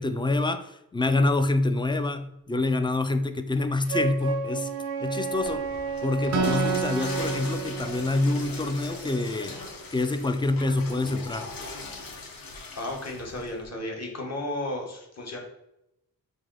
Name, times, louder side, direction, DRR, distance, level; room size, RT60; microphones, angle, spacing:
voice 1, 0.0-4.7 5.0-5.7 6.0-9.6 9.9-11.5, left 2 dB, 15° left, 8 dB, 0.3 m, -26 dB
Wind instrument woodwind instrument, 3.9-7.4, right 5 dB, 90° right, 0.7 m, -32 dB
Water / Toilet flush, 5.3-13.7, left 2 dB, 75° left, 0.9 m, -38 dB
Acoustic guitar, 6.3-9.8, right 6 dB, 50° right, 0.5 m, -32 dB
voice 2, 12.7-15.4, left 1 dB, 45° left, 0 dB, 1.2 m, -33 dB
3.4 x 2.6 x 3.8 m, 0.84 s
cardioid pair, 70°, 35 cm